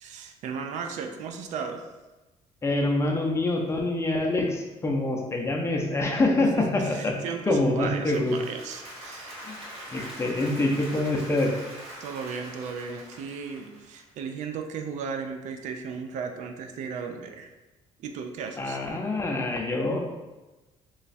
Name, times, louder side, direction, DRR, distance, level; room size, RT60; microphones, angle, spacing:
voice 1, 0.0-1.9 6.8-9.4 12.0-17.5 18.0-18.8, right 6 dB, 70° right, 5 dB, 0.4 m, -35 dB
voice 2, 2.6-7.2 7.5-8.4 9.4-9.6 9.9-11.5 18.6-20.0, left 2 dB, 20° left, 1 dB, 0.6 m, -25 dB
Applause, 8.1-14.1, right 1 dB, 45° right, 1.5 m, -43 dB
3.1 x 2.3 x 4.0 m, 1.1 s
cardioid pair, 105°, 13 cm